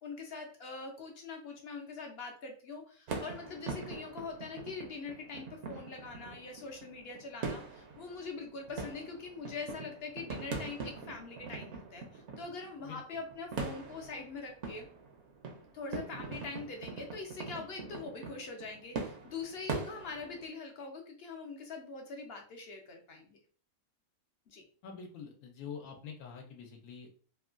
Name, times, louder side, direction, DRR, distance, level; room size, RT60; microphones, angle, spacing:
voice 1, 0.0-14.9 15.7-23.4 24.5-24.6, left 4 dB, 65° left, 3 dB, 0.6 m, -43 dB
sound 1, 3.1-20.5, right 4 dB, 65° right, 0.8 m, -43 dB
voice 2, 24.8-27.1, left 6 dB, 85° left, 1 dB, 1.1 m, -46 dB
3.0 x 2.1 x 2.4 m, 0.42 s
omnidirectional pair, 1.5 m